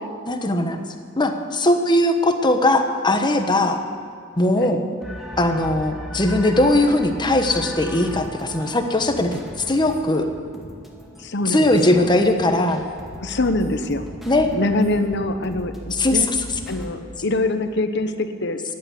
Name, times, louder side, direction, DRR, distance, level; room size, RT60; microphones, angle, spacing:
voice 1, 0.3-0.8 1.1-3.8 4.4-4.8 5.4-9.4 9.7-10.3 11.5-12.8 14.3-14.5 15.9-16.2, left 1 dB, 25° left, 5 dB, 1.2 m, -19 dB
sound 1, 5.0-16.9, equal, ahead, 1.9 m, -37 dB
voice 2, 11.2-12.1 13.2-14.1 14.4-16.3 16.7-18.6, left 2 dB, 60° left, 9 dB, 1.0 m, -24 dB
15.5 x 11.0 x 8.2 m, 2.4 s
head